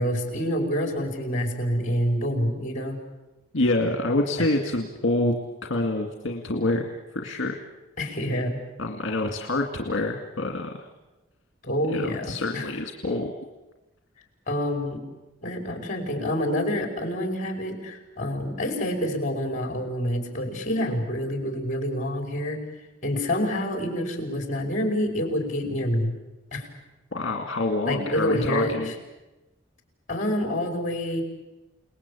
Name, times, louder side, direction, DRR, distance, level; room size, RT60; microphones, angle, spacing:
voice 1, 0.0-3.0 4.4-4.5 8.0-8.6 11.6-12.7 14.5-15.0 15.4-22.6 23.0-26.1 26.5-26.7 27.8-28.9 30.1-31.2, equal, 40° left, 3 dB, 5.1 m, -27 dB
voice 2, 3.5-5.3 5.6-7.6 8.8-10.9 11.9-13.3 27.1-28.9, left 2 dB, 65° left, 2 dB, 2.1 m, -27 dB
29.0 x 19.5 x 8.5 m, 1.1 s
head